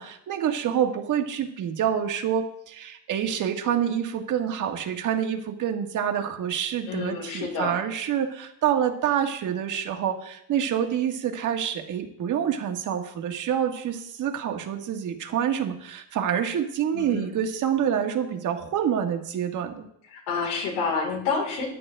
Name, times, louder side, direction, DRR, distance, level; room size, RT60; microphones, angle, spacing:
voice 1, 0.0-19.8, right 9 dB, 50° right, 4 dB, 1.6 m, -27 dB
voice 2, 6.9-7.8 16.9-17.3 20.1-21.7, left 4 dB, 80° left, -1 dB, 4.2 m, -29 dB
14.0 x 9.5 x 3.4 m, 0.74 s
cardioid pair, 120°, 39 cm